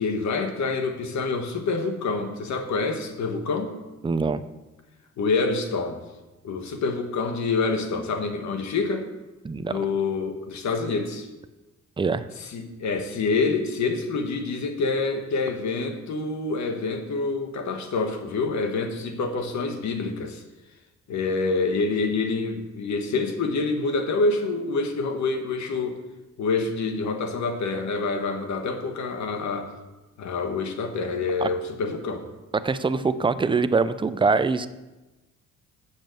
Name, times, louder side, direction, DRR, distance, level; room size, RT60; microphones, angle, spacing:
voice 1, 0.0-3.8 5.2-6.0 6.4-9.1 9.6-11.3 12.4-20.4 21.1-26.0 26.4-29.7 30.2-32.2, left 3 dB, 65° left, 5 dB, 1.4 m, -27 dB
voice 2, 4.0-4.4 9.4-9.7 12.0-12.3 31.4-31.5 32.6-34.7, right 4 dB, 15° right, 12 dB, 0.5 m, -23 dB
7.3 x 6.5 x 7.7 m, 1.1 s
cardioid pair, 90°, 30 cm